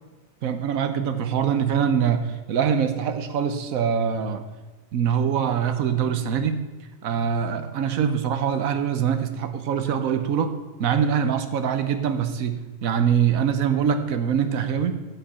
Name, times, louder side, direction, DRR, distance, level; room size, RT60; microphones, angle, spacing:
voice 1, 0.4-4.4 4.9-6.6 7.0-15.0, right 7 dB, 85° right, 9 dB, 1.3 m, -24 dB
11.0 x 9.0 x 4.3 m, 1.2 s
omnidirectional pair, 1.4 m